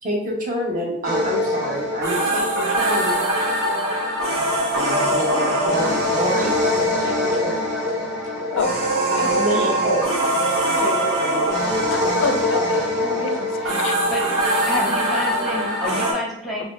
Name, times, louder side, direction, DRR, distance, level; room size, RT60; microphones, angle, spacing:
voice 1, 0.0-3.1 4.7-6.5 7.0-7.6 9.3-10.1 10.4-11.4, equal, 40° right, -2 dB, 0.9 m, -27 dB
sound 1, 1.0-16.1, equal, 90° right, 0.9 m, -22 dB
voice 2, 8.5-8.8 9.1-9.3 11.9-14.0, left 4 dB, 75° left, 7 dB, 0.4 m, -27 dB
voice 3, 14.7-16.6, equal, ahead, -4 dB, 0.8 m, -28 dB
5.8 x 2.0 x 2.4 m, 0.76 s
head